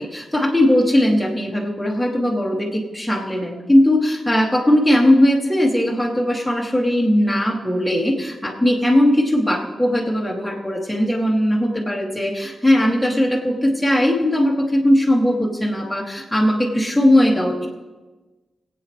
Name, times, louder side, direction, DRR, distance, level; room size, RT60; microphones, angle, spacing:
voice 1, 0.0-17.7, left 1 dB, ahead, -3 dB, 2.2 m, -19 dB
22.5 x 8.6 x 3.2 m, 1.2 s
wide cardioid pair, 105°, 0 cm